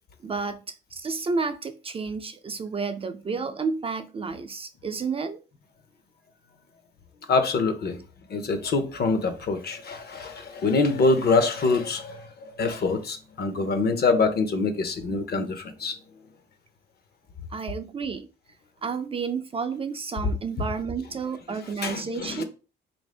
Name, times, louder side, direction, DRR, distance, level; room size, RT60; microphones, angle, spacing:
voice 1, 0.2-5.4 17.5-18.3 18.8-22.4, right 5 dB, 30° right, 0.4 m, -31 dB
voice 2, 7.3-8.0 8.3-15.9 21.8-22.4, left 3 dB, 55° left, 0.7 m, -25 dB
3.4 x 2.6 x 3.3 m
cardioid pair, 90°, 20 cm